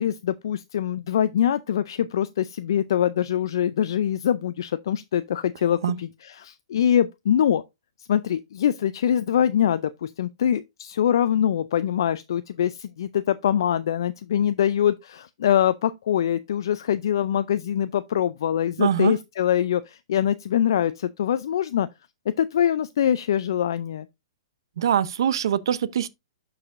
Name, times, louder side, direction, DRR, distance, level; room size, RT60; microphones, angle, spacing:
voice 1, 0.0-7.6 8.1-21.9 22.4-24.1, left 10 dB, 65° left, 0.4 m, -24 dB
voice 2, 18.8-19.1 24.8-26.1, right 9 dB, 70° right, 0.7 m, -23 dB
11.5 x 4.8 x 2.5 m
hypercardioid pair, 135°, 2 cm